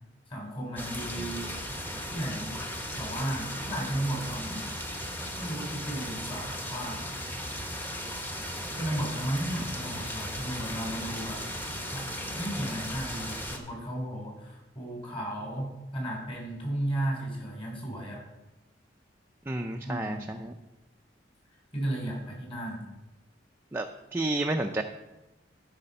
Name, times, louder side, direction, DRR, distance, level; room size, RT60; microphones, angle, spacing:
voice 1, 0.3-1.5 2.1-2.6 3.0-4.7 5.3-7.0 8.7-11.4 11.9-18.2 19.8-20.4 21.7-22.9, right 1 dB, 30° left, -2 dB, 3.9 m, -34 dB
sound 1, 0.8-13.6, equal, 10° left, 1.0 m, -36 dB
voice 2, 19.5-20.5 23.7-23.9 24.1-24.8, right 2 dB, 15° right, 3 dB, 0.4 m, -30 dB
12.5 x 5.0 x 5.5 m, 1.0 s
head